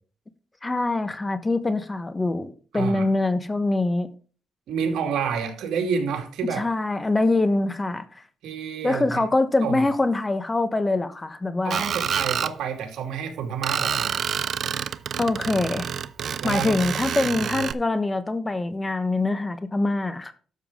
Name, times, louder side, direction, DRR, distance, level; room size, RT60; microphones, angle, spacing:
voice 1, 0.6-4.1 6.5-8.2 8.8-11.9 15.2-15.9 16.4-20.3, left 2 dB, 20° left, 1.2 m, -24 dB
voice 2, 2.7-3.1 4.7-6.6 8.4-9.2 9.6-9.9 11.6-14.2 16.4-16.8, right 6 dB, 80° right, 2.6 m, -29 dB
Screech, 11.7-12.5 13.6-17.7, right 8 dB, 60° right, 0.6 m, -28 dB
12.5 x 7.1 x 3.7 m
cardioid pair, 90°, 0 cm